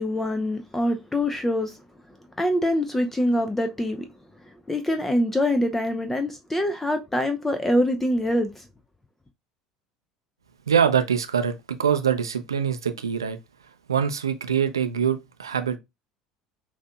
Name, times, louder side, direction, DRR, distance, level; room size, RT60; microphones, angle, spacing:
voice 1, 0.0-1.8 2.4-4.1 4.7-8.7, left 1 dB, 10° left, 0.5 m, -24 dB
voice 2, 10.7-13.4 13.9-15.8, right 7 dB, 80° right, 0.5 m, -24 dB
5.7 x 2.7 x 2.2 m
figure-of-eight pair, 65°, 2 cm